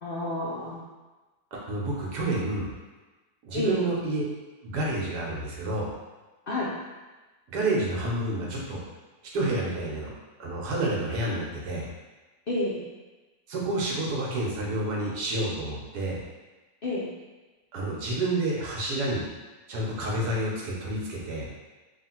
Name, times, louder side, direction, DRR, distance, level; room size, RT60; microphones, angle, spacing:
voice 1, 0.0-0.8 3.5-3.9 6.5-6.7 12.5-12.8 16.8-17.1, left 1 dB, 75° left, -6 dB, 0.5 m, -29 dB
voice 2, 1.5-2.7 3.4-4.2 4.6-5.9 7.5-8.8 9.3-10.1 10.4-11.9 13.5-16.2 17.7-19.2 19.7-21.5, right 2 dB, 75° right, -3 dB, 1.4 m, -29 dB
3.4 x 2.5 x 4.3 m, 1.2 s
omnidirectional pair, 1.8 m